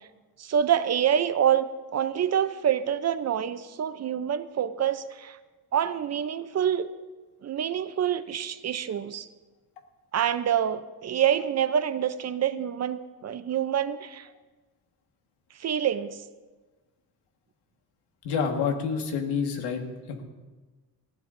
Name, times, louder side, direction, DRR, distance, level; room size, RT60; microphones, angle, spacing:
voice 1, 0.4-5.4 5.7-6.9 7.4-9.3 10.1-14.3 15.6-16.2, right 9 dB, 40° right, 13 dB, 0.6 m, -26 dB
voice 2, 18.2-19.8 20.1-20.2, left 6 dB, 85° left, 4 dB, 1.7 m, -28 dB
19.0 x 14.5 x 2.6 m, 1.3 s
cardioid pair, 110°, 39 cm